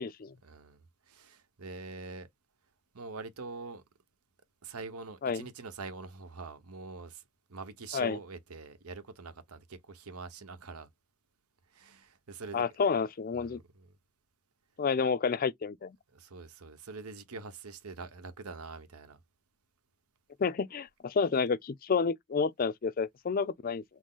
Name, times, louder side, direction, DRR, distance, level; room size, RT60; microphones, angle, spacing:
voice 1, 0.4-2.3 2.9-3.8 4.6-7.2 7.5-10.9 11.7-12.7 13.3-13.9 16.1-19.2, right 4 dB, 90° right, 1.0 m, -44 dB
voice 2, 12.5-13.6 14.8-16.0 20.4-23.8, left 5 dB, 40° left, 0.4 m, -30 dB
6.1 x 2.1 x 3.8 m
head